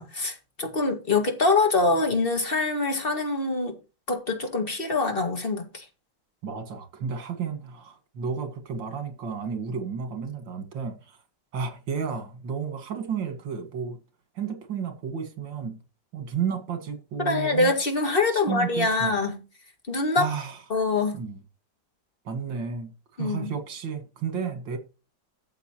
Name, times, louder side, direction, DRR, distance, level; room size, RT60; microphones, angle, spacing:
voice 1, 0.0-3.8 4.1-5.9 17.2-19.4 19.9-20.3 20.7-21.2 23.2-23.5, left 3 dB, 30° left, 2.1 m, -24 dB
voice 2, 6.4-11.2 11.5-14.0 14.3-15.8 16.1-17.7 18.3-19.2 20.1-20.6 21.1-21.4 22.2-22.9 23.2-24.8, right 6 dB, 80° right, 2.5 m, -32 dB
13.0 x 7.8 x 2.9 m
omnidirectional pair, 2.0 m